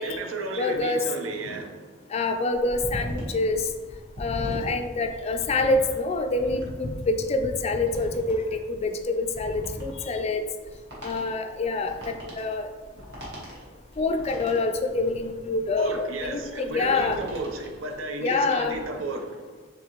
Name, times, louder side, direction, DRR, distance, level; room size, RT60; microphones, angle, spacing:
voice 1, 0.0-1.8 12.9-13.0 15.8-19.4, right 2 dB, 80° right, 4 dB, 0.6 m, -33 dB
voice 2, 0.6-1.1 2.1-3.7 4.2-10.4 11.0-12.7 14.0-17.2 18.2-18.8, left 3 dB, 30° left, 7 dB, 0.3 m, -26 dB
sound 1, 2.6-18.0 18.4-18.8, equal, 60° right, 1.5 m, -39 dB
4.8 x 3.6 x 3.0 m, 1.5 s
head